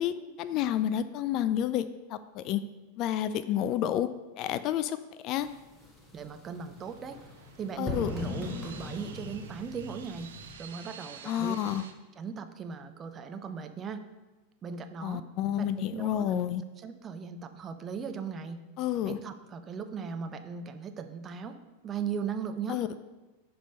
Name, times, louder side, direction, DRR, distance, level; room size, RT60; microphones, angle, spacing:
voice 1, 0.0-2.6 3.0-4.1 4.4-5.5 7.8-8.1 11.2-11.8 15.0-16.6 18.8-19.2 22.7-22.9, left 11 dB, 40° left, 13 dB, 0.3 m, -30 dB
sound 1, 5.4-10.5, left 2 dB, 10° left, 1.6 m, -40 dB
voice 2, 6.1-7.2 7.6-10.3 10.6-11.6 12.2-14.1 14.6-15.2 15.6-16.4 16.8-18.6 19.1-21.6 21.8-22.8, right 6 dB, 25° right, 8 dB, 0.6 m, -38 dB
sound 2, 6.8-11.9, right 7 dB, 60° right, 0.7 m, -50 dB
10.0 x 3.4 x 5.4 m, 1.1 s
figure-of-eight pair, 90°, 0 cm